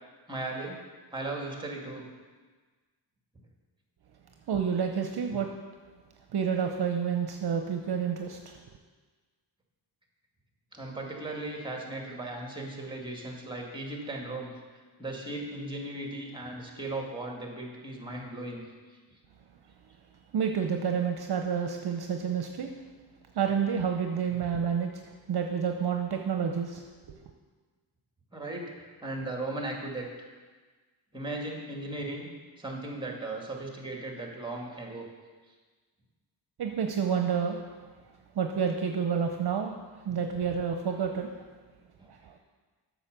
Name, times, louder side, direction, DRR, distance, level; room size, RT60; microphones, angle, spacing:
voice 1, 0.3-0.8 1.1-2.0 10.7-14.5 15.0-18.7 28.3-30.3 31.1-32.3 32.6-35.1 42.0-42.1, right 2 dB, 10° right, 0 dB, 2.3 m, -37 dB
voice 2, 4.5-5.5 6.3-8.6 20.3-22.7 23.3-24.9 25.3-26.8 27.1-27.2 36.6-37.6 38.3-39.7 40.0-41.3 42.1-42.4, right 7 dB, 55° right, 4 dB, 0.8 m, -29 dB
8.2 x 6.4 x 6.8 m, 1.4 s
cardioid pair, 75°, 47 cm